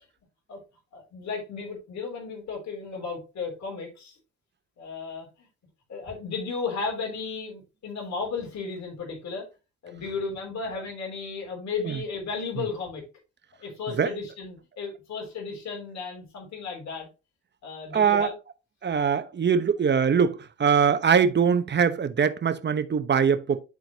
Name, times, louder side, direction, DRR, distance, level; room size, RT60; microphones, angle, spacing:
voice 1, 0.9-4.2 4.8-5.5 5.9-9.5 9.8-13.0 13.6-17.1 17.6-18.3, left 4 dB, 65° left, 3.3 m, -34 dB
voice 2, 17.9-18.3 18.8-23.6, right 6 dB, 35° right, 1.0 m, -22 dB
11.5 x 3.9 x 3.0 m
cardioid pair, 90°, 30 cm